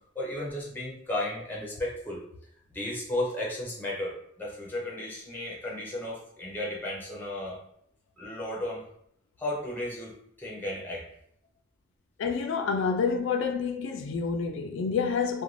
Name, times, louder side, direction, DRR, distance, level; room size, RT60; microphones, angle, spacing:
voice 1, 0.1-2.2 2.7-7.6 8.2-8.8 9.4-11.0, left 1 dB, 10° left, 0.6 m, -34 dB
voice 2, 12.2-15.4, left 5 dB, 75° left, 0.3 m, -28 dB
2.5 x 2.1 x 3.1 m
head